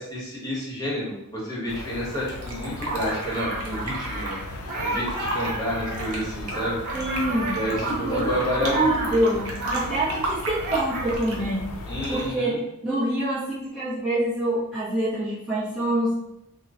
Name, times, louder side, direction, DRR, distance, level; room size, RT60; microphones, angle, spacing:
voice 1, 0.0-4.4 4.8-6.8 7.5-9.2 11.9-12.6, equal, 15° left, -7 dB, 1.2 m, -29 dB
sound 1, 1.7-12.3, left 2 dB, 80° left, 0.5 m, -37 dB
Fill (with liquid), 2.3-4.3 4.9-5.5 5.9-8.7 9.0-11.5 12.0-12.4, right 2 dB, 75° right, 0.8 m, -34 dB
sound 2, 2.9-10.2 10.5-11.2, right 2 dB, 45° right, 0.9 m, -32 dB
voice 2, 6.9-7.6 7.9-8.3 8.6-11.7 12.1-12.5 12.8-16.1, right 1 dB, ahead, -14 dB, 0.8 m, -25 dB
3.0 x 2.1 x 3.7 m, 0.81 s
head